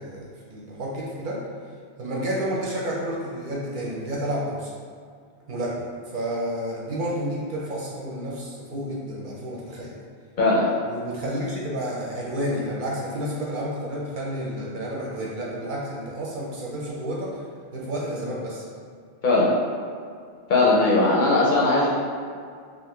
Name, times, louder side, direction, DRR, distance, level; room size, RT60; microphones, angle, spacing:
voice 1, 0.0-1.4 2.0-4.7 5.5-9.9 10.8-17.4 17.7-18.6, right 1 dB, 60° right, -5 dB, 0.6 m, -30 dB
voice 2, 10.4-10.7 19.2-19.5 20.5-21.9, left 2 dB, 60° left, -5 dB, 0.6 m, -19 dB
2.4 x 2.4 x 3.5 m, 2.2 s
omnidirectional pair, 1.1 m